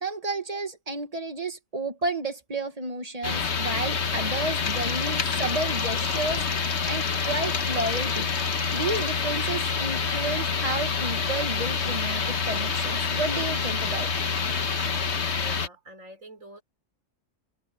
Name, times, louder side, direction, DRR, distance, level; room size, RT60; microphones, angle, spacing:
voice 1, 0.0-6.5 6.8-8.3 8.7-14.1, right 2 dB, 30° right, 1.7 m, -32 dB
sound 1, 3.2-15.7, left 5 dB, 60° left, 1.5 m, -27 dB
voice 2, 15.4-16.6, right 1 dB, 85° right, 5.0 m, -45 dB
omnidirectional pair, 1.3 m